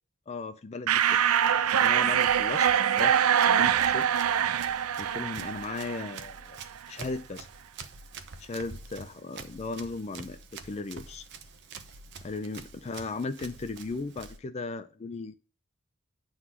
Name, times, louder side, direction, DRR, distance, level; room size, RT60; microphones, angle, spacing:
voice 1, 0.3-2.7 3.0-4.1 4.6-6.6 6.9-7.5 8.4-11.3 12.2-15.3, left 3 dB, 30° left, 10 dB, 0.4 m, -37 dB
sound 1, 0.9-6.4, right 9 dB, 90° right, 0.5 m, -24 dB
Run, 1.1-14.4, right 4 dB, 55° right, 0.8 m, -47 dB
9.7 x 4.0 x 6.0 m, 0.38 s
head